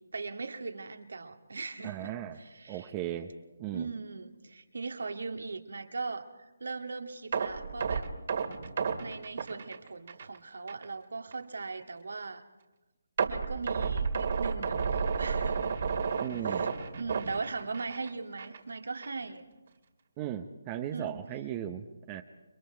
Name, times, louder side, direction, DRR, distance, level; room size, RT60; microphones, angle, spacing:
voice 1, 0.1-2.9 3.7-6.3 6.6-8.1 9.0-12.4 13.3-15.7 16.4-19.4 20.9-21.2, right 4 dB, 70° right, 6 dB, 2.0 m, -39 dB
voice 2, 1.8-2.4 2.7-3.3 3.6-3.9 16.2-16.6 20.2-22.2, right 11 dB, 25° right, 7 dB, 0.9 m, -36 dB
sound 1, 7.3-10.4 10.7-10.8 11.3-11.4 13.2-18.1 18.4-18.6 19.0-19.1, right 5 dB, 50° right, 2.2 m, -31 dB
29.5 x 23.0 x 4.6 m, 1.1 s
figure-of-eight pair, 150°, 0 cm